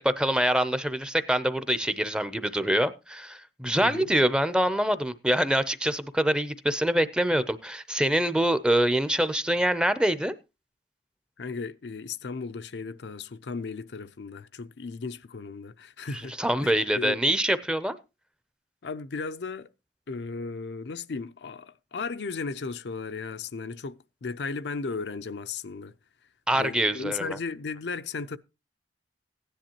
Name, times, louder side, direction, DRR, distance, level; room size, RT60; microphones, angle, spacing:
voice 1, 0.0-10.3 16.4-18.0 26.5-27.4, right 1 dB, 5° right, 0.6 m, -25 dB
voice 2, 3.8-4.1 11.4-17.2 18.8-19.7 20.1-25.9 26.5-28.4, left 4 dB, 70° left, 0.5 m, -35 dB
16.0 x 10.5 x 2.9 m
head